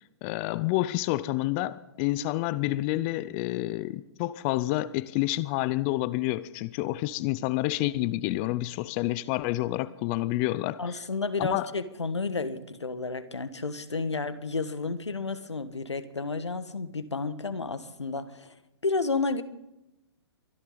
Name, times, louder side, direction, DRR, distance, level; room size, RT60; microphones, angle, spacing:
voice 1, 0.2-11.0 11.4-11.7, left 17 dB, 25° left, 0.5 m, -29 dB
voice 2, 10.8-18.6 18.8-19.4, left 3 dB, 90° left, 1.4 m, -31 dB
23.0 x 11.0 x 4.0 m
hypercardioid pair, 130°, 14 cm